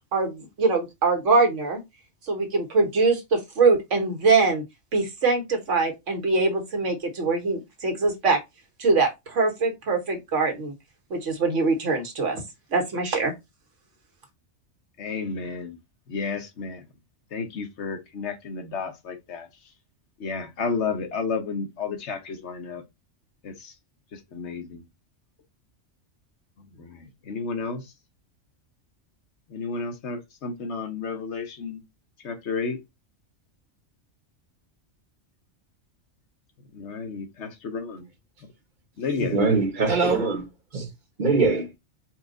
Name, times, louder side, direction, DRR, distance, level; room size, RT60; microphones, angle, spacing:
voice 1, 0.1-1.8 2.3-4.6 4.9-8.4 8.8-10.7 11.1-12.4 12.7-13.3, right 4 dB, 85° right, 1.6 m, -23 dB
voice 2, 15.0-15.8 16.1-16.9 17.3-19.5 20.2-22.8 23.4-23.7 24.1-24.8 26.6-27.9 29.5-31.8 32.2-32.8 36.7-38.0 38.4-38.5 39.0-39.4, left 4 dB, 70° left, 1.2 m, -32 dB
voice 3, 39.2-40.5 40.7-40.9 41.2-41.8, right 4 dB, 45° right, 1.0 m, -22 dB
4.4 x 2.4 x 3.8 m
omnidirectional pair, 1.2 m